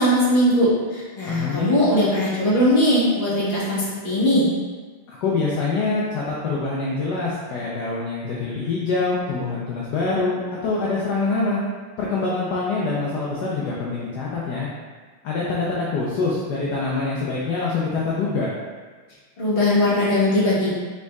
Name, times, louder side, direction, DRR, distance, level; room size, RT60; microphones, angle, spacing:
voice 1, 0.0-4.4 19.4-20.7, left 1 dB, 30° left, -9 dB, 1.3 m, -19 dB
voice 2, 1.3-1.7 5.1-11.6 12.0-14.7 15.2-18.5, left 3 dB, 70° left, -5 dB, 1.0 m, -25 dB
5.2 x 3.5 x 2.3 m, 1.4 s
omnidirectional pair, 2.4 m